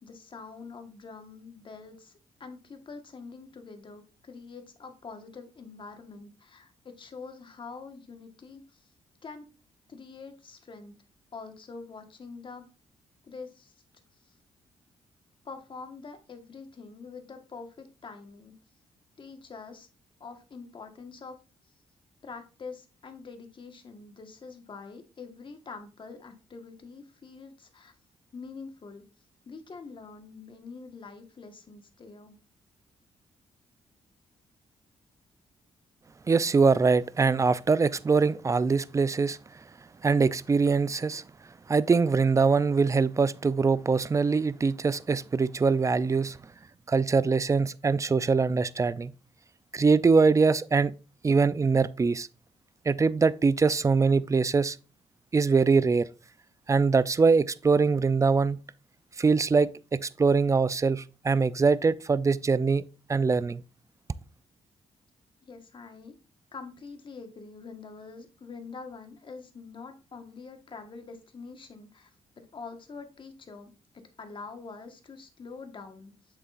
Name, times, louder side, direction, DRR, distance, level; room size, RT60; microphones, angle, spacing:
voice 1, 0.0-2.1 2.4-8.9 9.2-9.5 9.9-10.9 11.3-12.6 13.2-13.7 14.3-14.4 15.4-18.5 19.2-19.9 20.2-21.4 22.2-27.9 28.3-29.0 29.4-32.4 65.4-66.1 66.5-72.1 72.4-73.7 74.2-76.1, left 4 dB, 40° left, 1.5 m, -45 dB
voice 2, 36.3-39.4 40.0-41.2 41.7-46.4 46.9-49.1 49.7-50.9 51.2-52.3 52.9-54.8 55.3-56.1 56.7-58.6 59.2-62.8 63.1-63.6, right 4 dB, 25° right, 0.5 m, -23 dB
7.8 x 6.7 x 2.5 m
cardioid pair, 80°, 12 cm